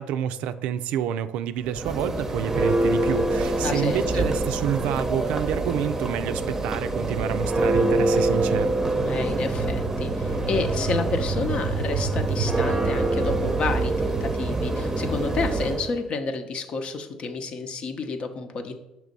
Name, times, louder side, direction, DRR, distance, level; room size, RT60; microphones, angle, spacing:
voice 1, 0.0-8.7, right 10 dB, 75° right, 12 dB, 0.3 m, -28 dB
Church bell, 1.6-15.9, right 2 dB, 20° right, 0.7 m, -25 dB
voice 2, 3.6-4.3 9.0-18.8, left 4 dB, 50° left, 7 dB, 0.8 m, -30 dB
6.1 x 3.1 x 5.2 m, 0.92 s
supercardioid pair, 85°, 2 cm